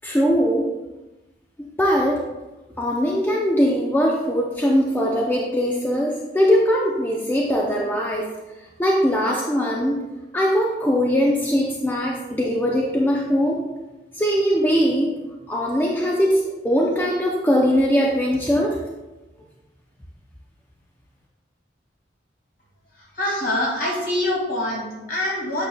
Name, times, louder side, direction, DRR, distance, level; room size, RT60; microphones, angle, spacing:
voice 1, 0.0-0.7 1.8-2.2 2.8-8.3 8.8-10.0 10.3-13.6 14.1-15.1 15.5-18.8, equal, 10° left, -2 dB, 0.6 m, -21 dB
voice 2, 23.0-25.7, left 1 dB, 50° left, -3 dB, 2.3 m, -25 dB
8.7 x 6.6 x 2.3 m, 1.1 s
head